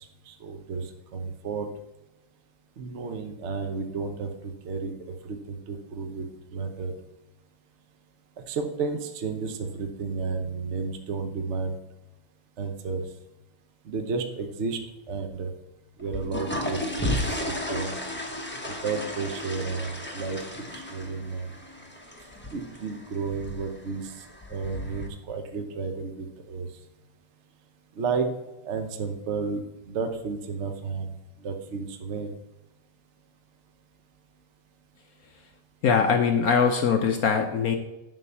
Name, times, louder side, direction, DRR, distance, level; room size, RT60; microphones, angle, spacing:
voice 1, 0.3-0.8 1.1-1.7 2.8-4.9 5.2-6.3 6.5-6.9 8.5-11.7 12.6-13.0 13.9-14.8 15.1-15.5 16.0-18.0 18.8-20.4 20.7-21.5 22.5-24.1 24.5-26.7 28.0-28.3 28.6-31.1 31.4-32.3, right 4 dB, 55° right, 6 dB, 0.8 m, -32 dB
sound 1, 16.0-25.1, left 1 dB, 10° left, 0.5 m, -34 dB
voice 2, 35.8-37.7, left 6 dB, 75° left, 5 dB, 0.8 m, -22 dB
11.0 x 3.9 x 6.8 m, 0.96 s
omnidirectional pair, 2.4 m